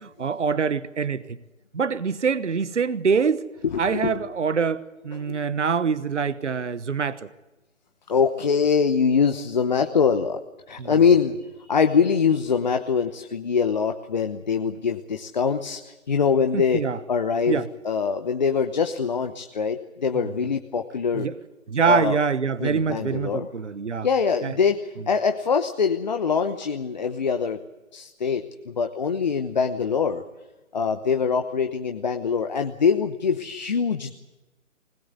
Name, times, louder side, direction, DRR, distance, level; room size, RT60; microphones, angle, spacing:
voice 1, 0.0-1.4 1.7-3.5 3.8-7.3 10.8-10.9 16.5-17.0 17.5-17.7 20.1-20.3 21.1-21.4 21.7-24.1 24.4-24.5, right 6 dB, 60° right, 1.2 m, -25 dB
voice 2, 3.6-4.2 5.3-5.4 8.1-21.3 21.8-22.2 22.6-23.5 24.0-27.6 27.9-30.2 30.7-34.1, left 6 dB, 35° left, 0.9 m, -23 dB
21.0 x 20.0 x 8.2 m
figure-of-eight pair, 150°, 40 cm